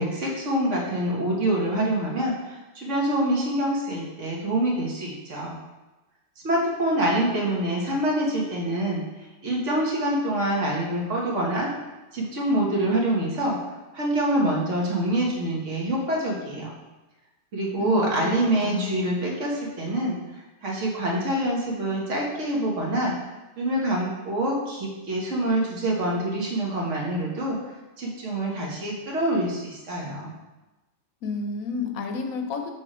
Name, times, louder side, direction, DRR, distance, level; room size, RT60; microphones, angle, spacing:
voice 1, 0.0-5.6 6.4-9.0 9.4-11.7 12.1-13.6 13.9-16.7 17.5-20.2 20.6-23.1 23.6-27.6 28.0-30.3, right 1 dB, 60° right, -2 dB, 1.5 m, -25 dB
voice 2, 17.8-18.3 18.6-18.9 31.2-32.7, left 4 dB, 80° left, 4 dB, 1.1 m, -30 dB
6.0 x 3.2 x 4.9 m, 1.1 s
omnidirectional pair, 1.5 m